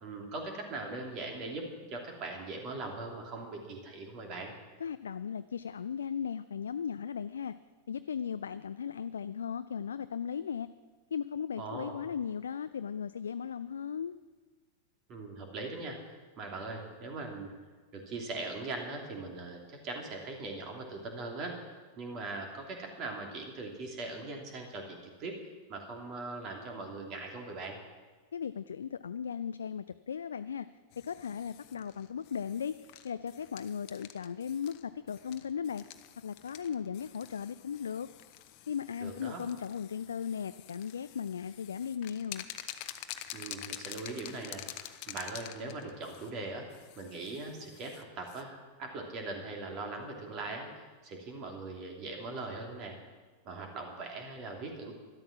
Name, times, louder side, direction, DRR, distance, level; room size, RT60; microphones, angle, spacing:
voice 1, 0.0-4.5 11.6-12.0 15.1-17.5 17.9-25.3 25.7-27.8 39.0-39.4 43.3-53.0 53.4-54.9, right 3 dB, 35° right, 2 dB, 2.9 m, -41 dB
voice 2, 4.8-7.6 7.9-10.7 11.1-14.1 28.3-30.7 31.0-32.8 33.0-35.8 36.2-38.1 38.7-42.5, left 7 dB, 70° left, 12 dB, 0.3 m, -37 dB
sound 1, 30.9-48.4, left 12 dB, 45° left, 0.9 m, -48 dB
13.0 x 12.0 x 6.0 m, 1.4 s
figure-of-eight pair, 90°, 0 cm